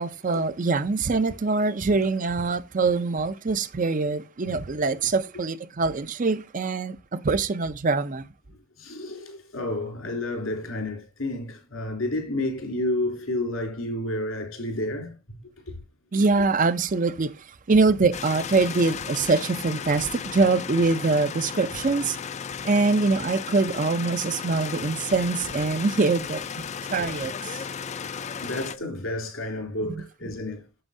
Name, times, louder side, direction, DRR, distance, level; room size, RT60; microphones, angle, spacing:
voice 1, 0.0-8.2 16.1-17.3 17.7-22.2 22.6-26.4 26.9-27.6 29.9-30.0, right 3 dB, 40° right, 0.5 m, -24 dB
voice 2, 8.8-15.2 28.0-30.6, left 1 dB, 90° left, 3.2 m, -30 dB
sound 1, 18.1-28.8, left 7 dB, 35° left, 0.4 m, -35 dB
8.8 x 7.2 x 2.6 m
head